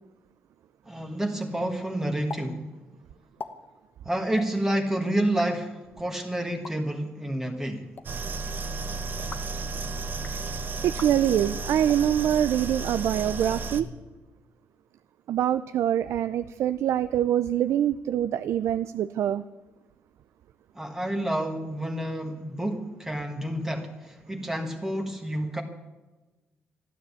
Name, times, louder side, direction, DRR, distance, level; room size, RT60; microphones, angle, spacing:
voice 1, 0.8-2.7 4.0-7.9 20.7-25.6, right 1 dB, 10° right, 3 dB, 1.4 m, -29 dB
sound 1, 2.3-2.4 2.7-2.8 3.2-3.5 4.3-4.5 5.2-5.5 6.5-6.7 7.7-8.1 9.1-9.5 10.1-10.4 10.9-11.1 11.8-12.0 12.7-13.4, left 5 dB, 40° left, 1.2 m, -42 dB
sound 2, 8.0-13.8, right 3 dB, 45° right, 1.0 m, -33 dB
voice 2, 10.8-13.9 15.3-19.4, right 10 dB, 80° right, 12 dB, 0.5 m, -25 dB
13.5 x 12.5 x 8.3 m, 1.2 s
cardioid pair, 135°, 5 cm